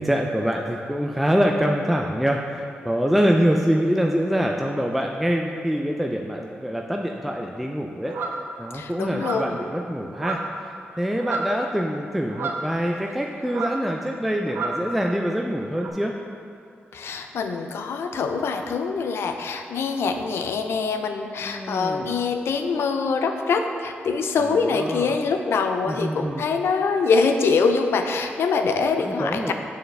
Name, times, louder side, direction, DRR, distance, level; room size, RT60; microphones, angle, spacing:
voice 1, 0.0-8.2 8.6-16.1 21.5-22.1 24.4-25.2 25.9-26.4 29.0-29.5, equal, ahead, 1 dB, 0.3 m, -25 dB
sound 1, 8.1-8.4 9.1-9.6 10.1-10.7 10.9-11.6 12.3-13.2 13.5-13.9 14.5-14.9 15.8-15.9, right 3 dB, 70° right, 0.6 m, -31 dB
voice 2, 8.7-9.6 16.9-29.5, left 4 dB, 80° left, 6 dB, 0.5 m, -24 dB
6.8 x 6.4 x 3.3 m, 2.4 s
wide cardioid pair, 110°, 4 cm